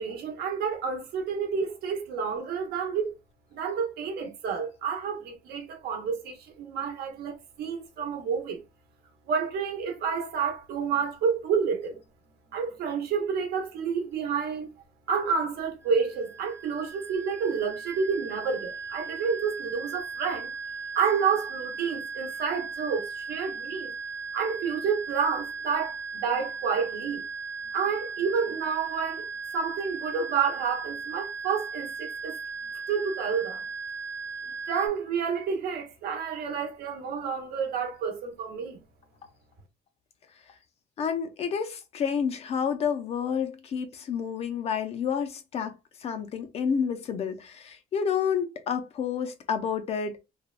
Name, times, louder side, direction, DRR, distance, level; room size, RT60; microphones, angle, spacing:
voice 1, 0.0-3.2 3.5-8.6 9.3-12.0 12.5-14.7 15.1-20.5 20.9-23.9 24.3-27.3 27.7-29.2 29.5-32.3 32.9-33.6 34.5-38.8, right 6 dB, 70° right, 0.9 m, -29 dB
sound 1, 15.8-34.9, right 4 dB, 15° right, 0.5 m, -37 dB
voice 2, 41.0-50.2, left 7 dB, 40° left, 0.4 m, -29 dB
3.3 x 2.1 x 2.3 m
cardioid pair, 180°, 17 cm